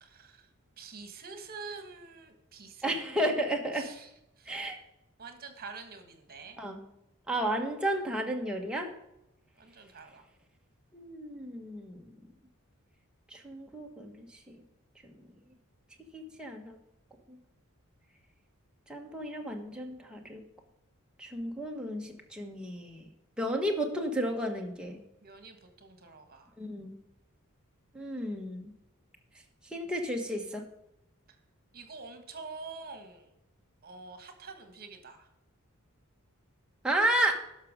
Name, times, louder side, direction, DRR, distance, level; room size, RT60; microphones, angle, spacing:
voice 1, 0.0-0.5 0.8-2.9 3.7-4.1 4.4-4.6 5.2-6.6 9.6-10.2 25.2-26.5 31.7-33.3 33.8-35.3, right 4 dB, 45° right, 7 dB, 1.5 m, -46 dB
voice 2, 2.8-3.9 4.5-4.8 6.6-6.8 7.3-8.9 10.9-12.1 13.3-14.3 16.1-16.8 17.3-17.4 18.9-20.4 21.2-23.0 23.4-25.0 26.6-26.9 27.9-28.7 29.7-30.6 36.8-37.4, right 1 dB, 5° right, 0 dB, 1.3 m, -32 dB
11.5 x 6.1 x 5.1 m, 0.85 s
head